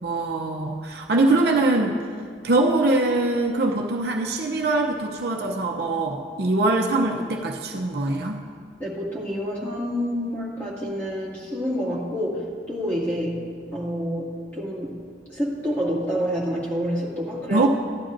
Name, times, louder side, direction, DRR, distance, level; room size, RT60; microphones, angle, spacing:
voice 1, 0.0-2.0 2.4-8.4 17.5-17.7, right 2 dB, 55° right, 1 dB, 0.6 m, -23 dB
voice 2, 8.8-13.4 13.7-15.0 15.3-17.7, equal, 10° left, -7 dB, 2.1 m, -28 dB
15.5 x 11.0 x 2.6 m, 2.1 s
head